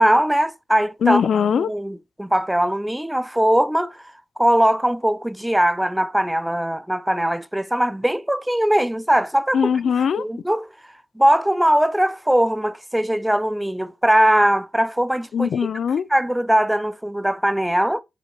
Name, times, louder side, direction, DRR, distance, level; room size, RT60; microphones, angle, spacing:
voice 1, 0.0-1.2 1.5-4.0 4.4-9.7 10.1-10.7 11.2-15.7 16.1-18.0, right 1 dB, 5° right, 0.5 m, -20 dB
voice 2, 1.0-1.7 9.5-10.2 15.3-16.0, left 7 dB, 50° left, 0.8 m, -20 dB
6.8 x 6.1 x 4.8 m
wide cardioid pair, 145°, 0 cm